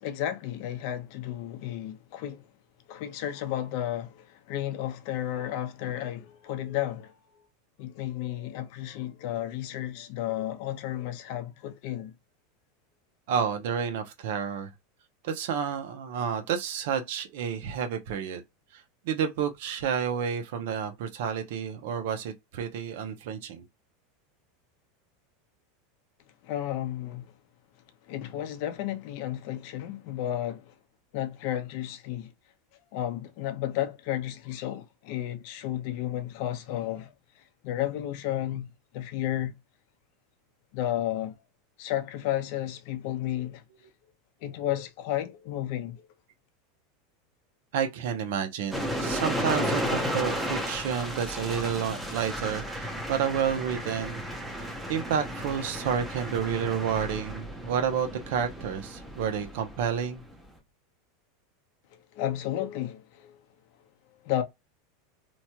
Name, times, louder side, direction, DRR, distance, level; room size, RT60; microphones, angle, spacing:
voice 1, 0.0-2.4 2.9-7.1 7.8-12.1 26.4-27.3 28.1-30.7 31.1-32.3 32.9-37.1 37.6-39.5 40.7-41.3 41.8-43.6 44.4-46.0 62.1-63.4 64.2-64.4, left 12 dB, 60° left, 0.7 m, -32 dB
voice 2, 13.3-14.7 15.2-18.4 18.7-23.6 47.7-54.2 54.6-60.2, right 7 dB, 70° right, 0.7 m, -30 dB
sound 1, 48.7-60.4, equal, 5° right, 0.7 m, -33 dB
3.0 x 2.2 x 2.8 m
supercardioid pair, 145°, 0 cm